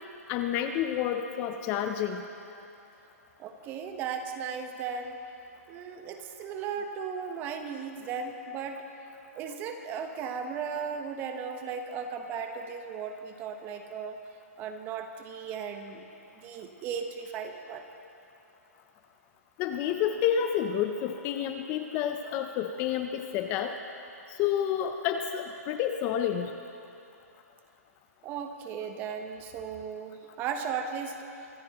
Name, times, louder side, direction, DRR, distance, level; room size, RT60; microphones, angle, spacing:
voice 1, 0.3-2.2 19.6-23.7 24.3-26.5, left 9 dB, 25° left, 6 dB, 0.5 m, -29 dB
voice 2, 3.4-5.2 5.7-8.8 9.3-14.2 14.6-16.0 16.3-17.9 28.2-31.2, right 6 dB, 20° right, 6 dB, 1.0 m, -36 dB
25.0 x 14.0 x 3.0 m, 2.7 s
hypercardioid pair, 150°, 9 cm